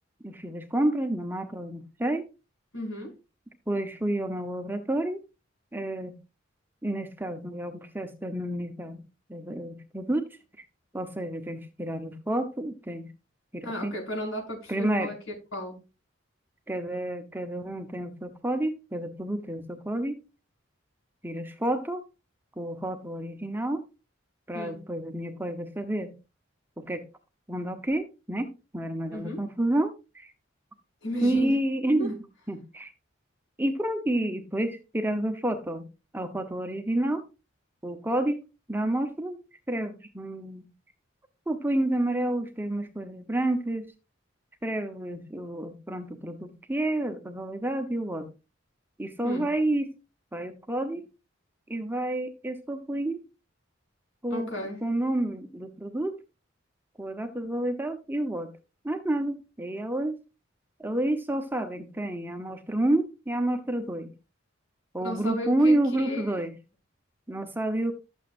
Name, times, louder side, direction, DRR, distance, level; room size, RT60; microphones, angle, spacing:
voice 1, 0.2-2.2 3.7-5.2 5.7-6.2 6.8-9.0 9.3-10.3 10.9-13.1 13.5-13.9 14.7-15.1 16.7-20.2 21.2-22.0 22.6-23.8 24.5-26.1 26.8-27.0 27.5-30.3 31.2-32.2 32.5-32.9 33.6-35.9 36.1-37.2 37.8-38.4 38.7-39.4 39.7-40.7 41.5-43.8 44.6-48.3 49.0-49.9 50.3-51.0 51.7-53.2 54.2-54.5 54.8-56.2 57.0-58.5 58.8-60.2 60.8-64.1 64.9-66.5 67.3-67.9, right 1 dB, 10° right, 0.9 m, -29 dB
voice 2, 2.7-3.1 13.6-15.2 15.5-15.8 24.5-24.8 29.1-29.4 31.0-31.5 32.0-32.1 49.2-49.5 54.3-54.8 65.0-66.2, equal, 75° left, 5.5 m, -34 dB
12.5 x 8.0 x 2.6 m
head